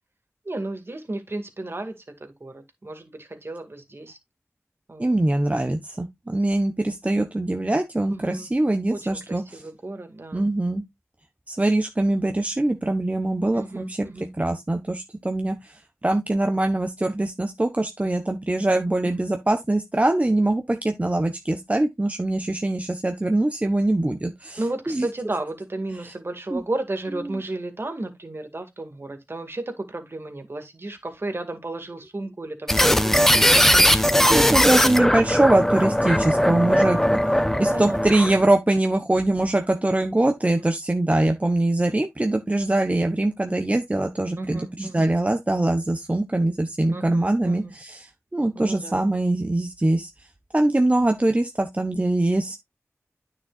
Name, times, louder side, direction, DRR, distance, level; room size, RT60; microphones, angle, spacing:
voice 1, 0.4-4.2 4.9-5.2 8.1-8.5 8.9-10.5 13.5-14.3 19.0-19.3 24.6-34.9 37.5-38.3 40.5-40.7 44.4-45.1 46.9-47.8 48.5-49.1, right 2 dB, 50° right, 2.1 m, -34 dB
voice 2, 5.0-9.4 10.3-10.8 11.5-14.1 14.4-15.6 16.0-24.6 24.9-25.0 26.5-26.6 34.3-37.2 37.6-48.0 48.3-50.1 50.5-52.6, right 2 dB, 25° right, 1.0 m, -23 dB
sound 1, 32.7-38.5, equal, 5° left, 0.8 m, -19 dB
9.5 x 6.4 x 2.5 m
wide cardioid pair, 50°, 5 cm